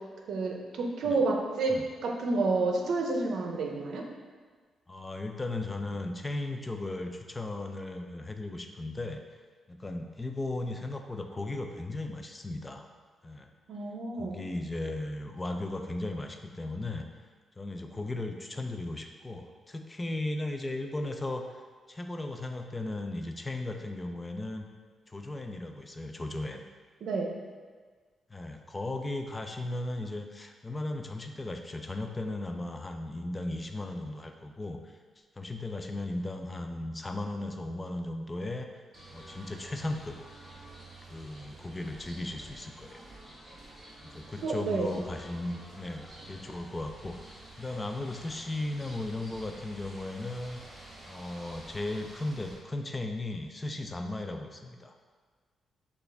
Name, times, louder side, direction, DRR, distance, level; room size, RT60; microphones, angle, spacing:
voice 1, 0.3-4.0 13.7-14.4 27.0-27.3 44.4-45.0, right 3 dB, 70° right, 1 dB, 0.6 m, -29 dB
voice 2, 4.9-9.2 9.7-12.9 13.2-13.5 14.2-17.1 17.6-24.6 25.1-26.6 28.3-35.0 35.4-38.7 39.1-40.2 41.1-43.0 44.0-50.6 51.0-54.9, left 2 dB, 15° left, 4 dB, 0.3 m, -36 dB
sound 1, 38.9-52.6, right 1 dB, 10° right, 1.2 m, -50 dB
6.0 x 2.4 x 3.4 m, 1.5 s
wide cardioid pair, 160°, 0 cm